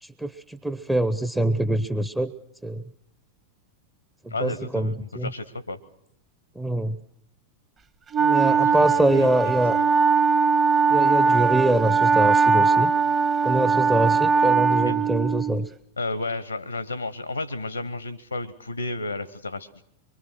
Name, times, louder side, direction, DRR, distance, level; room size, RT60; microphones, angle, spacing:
voice 1, 0.0-2.3 2.6-2.8 4.2-5.3 6.6-7.0 8.2-9.8 10.9-12.9 13.4-15.7, right 1 dB, 5° right, 12 dB, 0.9 m, -24 dB
voice 2, 4.3-5.8 8.5-9.8 14.8-15.0 16.0-19.8, left 2 dB, 85° left, 16 dB, 1.1 m, -32 dB
Wind instrument woodwind instrument, 8.1-15.7, right 5 dB, 25° right, 1.4 m, -20 dB
24.5 x 24.0 x 6.2 m, 0.77 s
figure-of-eight pair, 90°, 0 cm